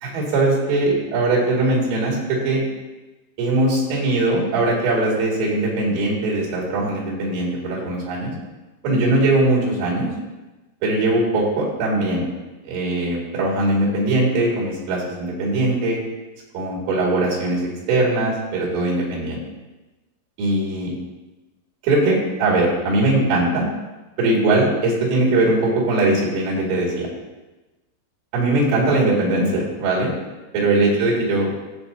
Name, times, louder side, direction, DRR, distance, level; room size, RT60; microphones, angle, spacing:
voice 1, 0.0-2.6 3.4-8.3 8.8-10.1 10.8-12.3 12.6-16.0 16.5-19.4 20.4-20.9 21.8-23.7 24.2-27.1 28.3-30.1 30.5-31.5, right 2 dB, 80° right, -4 dB, 4.8 m, -20 dB
14.5 x 8.1 x 2.8 m, 1.1 s
omnidirectional pair, 5.7 m